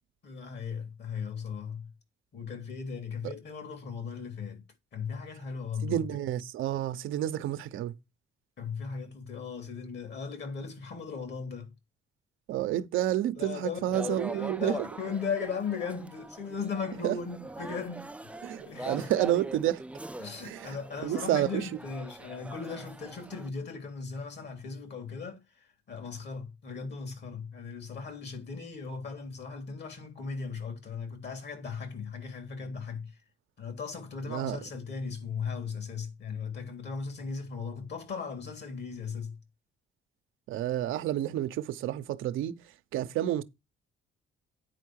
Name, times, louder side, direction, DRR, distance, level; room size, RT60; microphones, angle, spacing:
voice 1, 0.2-1.9 2.3-4.6 4.9-6.0 8.6-11.7 13.4-18.3 18.6-19.1 20.2-33.1 33.6-39.4, left 5 dB, 60° left, 3.3 m, -37 dB
voice 2, 5.8-7.9 12.5-14.8 17.0-17.2 18.4-19.8 20.4-21.7 34.2-34.6 40.5-42.5 42.9-43.4, right 12 dB, 85° right, 0.8 m, -30 dB
sound 1, 13.9-23.5, right 2 dB, 5° right, 0.4 m, -42 dB
9.2 x 4.6 x 6.3 m
cardioid pair, 90°, 20 cm